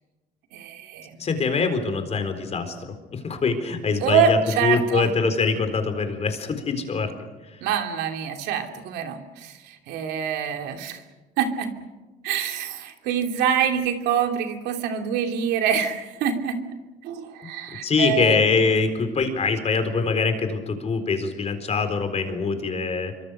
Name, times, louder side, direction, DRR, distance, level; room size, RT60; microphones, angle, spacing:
voice 1, 0.5-1.3 4.0-5.1 7.6-11.0 11.4-11.7 12.2-16.6 17.0-18.4, right 7 dB, 90° right, 5 dB, 2.9 m, -25 dB
voice 2, 1.2-2.8 3.1-7.2 17.8-23.1, left 4 dB, 40° left, 8 dB, 4.1 m, -24 dB
26.5 x 24.0 x 6.6 m, 1.1 s
cardioid pair, 110°, 17 cm